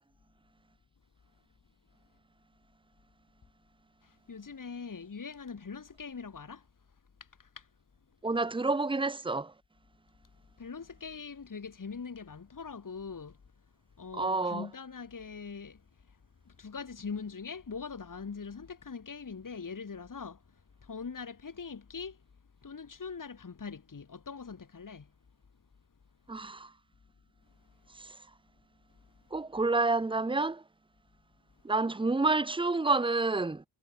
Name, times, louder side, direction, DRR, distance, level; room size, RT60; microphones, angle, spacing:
voice 1, 4.0-6.7 7.2-7.7 10.6-13.4 14.0-16.2 16.4-22.2 22.6-25.1, left 5 dB, 45° left, 2.7 m, -42 dB
voice 2, 8.2-9.5 14.1-14.7 26.3-26.7 28.0-28.2 29.3-30.6 31.6-33.6, right 3 dB, 10° right, 0.6 m, -29 dB
cardioid pair, 70°, 45 cm